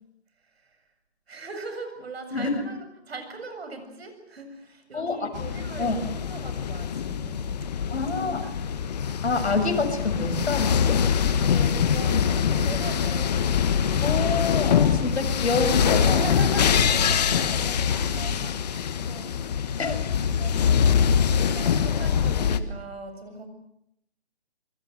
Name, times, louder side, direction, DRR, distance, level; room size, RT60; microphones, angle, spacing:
voice 1, 1.3-7.5 7.8-8.6 11.4-13.5 16.0-19.4 19.7-19.8 20.2-21.2 21.5-23.5, right 3 dB, 65° right, 7 dB, 7.6 m, -39 dB
voice 2, 4.9-5.3 5.8-6.0 7.9-8.4 9.2-11.0 14.0-16.4 19.8-20.0, left 3 dB, 75° left, 5 dB, 6.9 m, -27 dB
sound 1, 5.3-22.6, left 7 dB, 40° left, 1.5 m, -24 dB
27.5 x 23.0 x 7.9 m, 0.77 s
hypercardioid pair, 160°, 33 cm